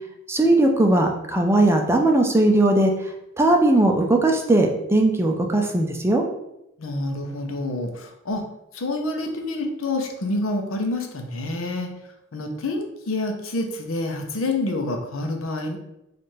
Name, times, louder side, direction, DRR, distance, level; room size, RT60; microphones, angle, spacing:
voice 1, 0.3-2.9 3.4-6.2, right 1 dB, 15° right, 3 dB, 0.4 m, -18 dB
voice 2, 6.8-8.4 8.7-11.9 12.3-15.8, left 2 dB, 80° left, 3 dB, 0.6 m, -27 dB
3.2 x 2.5 x 4.3 m, 0.85 s
head